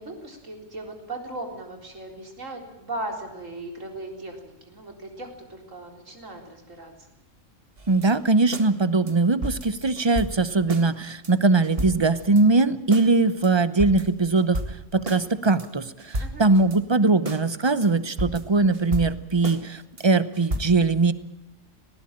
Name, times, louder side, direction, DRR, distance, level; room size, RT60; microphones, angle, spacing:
voice 1, 0.0-7.1 16.2-16.5, right 2 dB, 70° right, 3 dB, 4.3 m, -38 dB
sound 1, 7.8-8.7 9.1-9.2 9.4-10.9 11.2-11.3 11.6-12.4 12.9-13.1 13.4-13.5 13.8-15.2 15.6-15.7 16.0-16.8 17.3-17.4 17.8-17.9 18.2-19.6 20.0-20.1 20.3-20.6, right 1 dB, 45° right, 2.2 m, -33 dB
voice 2, 7.9-14.6 14.9-21.1, right 3 dB, 25° right, 14 dB, 0.8 m, -21 dB
19.0 x 18.0 x 8.9 m, 0.92 s
omnidirectional pair, 1.4 m